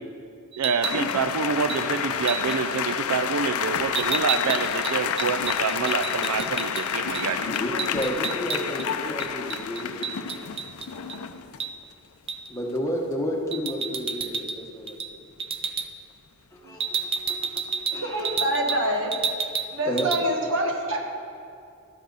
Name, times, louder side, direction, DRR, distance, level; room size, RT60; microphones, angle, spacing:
sound 1, 0.5-1.0 1.7-1.8 2.3-2.6 3.9-6.8 7.1-7.3 7.5-8.9 9.2-11.2 11.6-11.7 12.3-12.5 13.5-14.6 14.9-15.1 15.4-15.9 16.8-18.8 19.1-19.7 20.0-20.2, right 6 dB, 25° right, 0.4 m, -30 dB
voice 1, 0.6-7.5, right 5 dB, 85° right, 10 dB, 0.5 m, -27 dB
sound 2, 0.8-11.6 13.5-13.6 13.9-14.2 18.2-18.4, left 7 dB, 75° left, 0.5 m, -29 dB
voice 2, 7.5-10.2 12.5-15.2 16.5-18.3 18.7-18.8 19.8-20.1, equal, 15° left, -1 dB, 1.2 m, -32 dB
voice 3, 17.9-19.1 19.7-21.1, right 1 dB, 60° right, 2 dB, 1.3 m, -26 dB
12.5 x 10.5 x 4.0 m, 2.5 s
head